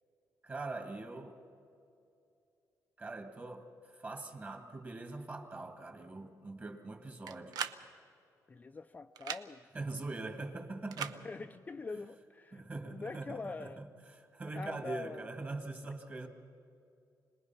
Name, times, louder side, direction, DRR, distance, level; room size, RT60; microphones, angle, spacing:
voice 1, 0.4-1.4 3.0-7.6 9.7-11.3 12.5-13.9 14.1-16.3, right 2 dB, 30° right, 5 dB, 2.0 m, -42 dB
sound 1, 7.3-7.8 9.2-9.4 10.9-11.2, right 8 dB, 85° right, 0.7 m, -38 dB
voice 2, 8.5-9.7 11.2-13.8 14.5-15.3, left 4 dB, 25° left, 8 dB, 0.4 m, -44 dB
26.0 x 20.0 x 5.8 m, 2.6 s
cardioid pair, 115°, 7 cm